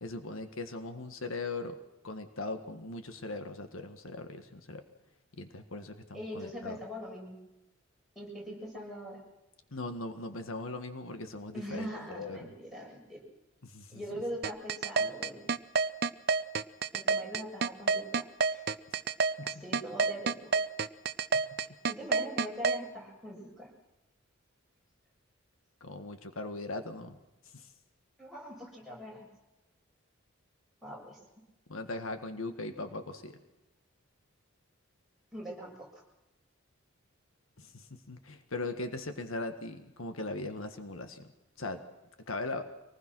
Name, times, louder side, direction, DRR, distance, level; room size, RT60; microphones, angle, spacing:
voice 1, 0.0-1.8 2.0-4.8 5.4-6.8 9.7-12.4 13.6-14.0 19.4-19.5 25.8-27.2 27.5-27.7 31.7-33.4 37.6-41.3 41.6-41.8 42.3-42.6, left 2 dB, 80° left, 8 dB, 1.7 m, -39 dB
voice 2, 6.1-7.4 8.2-9.2 11.5-13.2 13.9-15.6 16.9-18.6 19.4-20.5 21.9-23.7 28.2-29.3 30.8-31.2 35.3-36.0, equal, ahead, -4 dB, 7.2 m, -42 dB
sound 1, 14.4-22.8, right 4 dB, 50° right, 0.6 m, -28 dB
25.0 x 19.5 x 6.3 m, 0.98 s
head